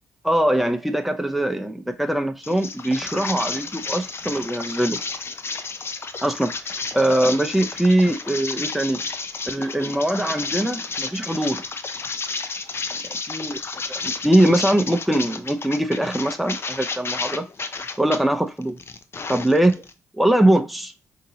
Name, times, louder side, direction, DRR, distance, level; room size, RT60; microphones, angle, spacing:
voice 1, 0.2-5.0 6.2-6.5 6.9-9.0 9.5-11.6 13.3-13.6 13.9-17.4 18.0-18.8 19.3-19.8 20.2-20.9, right 1 dB, ahead, 0.6 m, -21 dB
sound 1, 2.4-18.2 18.6-19.9, left 4 dB, 40° left, 0.6 m, -32 dB
5.1 x 2.9 x 2.8 m
supercardioid pair, 60°, 6 cm